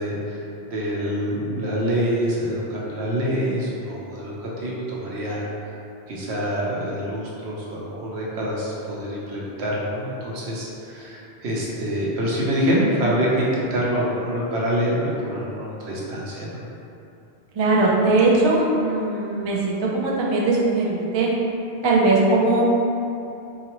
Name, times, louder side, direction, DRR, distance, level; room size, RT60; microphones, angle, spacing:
voice 1, 0.0-5.4 6.1-16.6, equal, 80° right, -5 dB, 1.0 m, -26 dB
voice 2, 17.6-21.3 21.8-22.6, right 2 dB, 45° right, -4 dB, 0.3 m, -20 dB
3.9 x 2.5 x 2.9 m, 2.8 s
omnidirectional pair, 1.1 m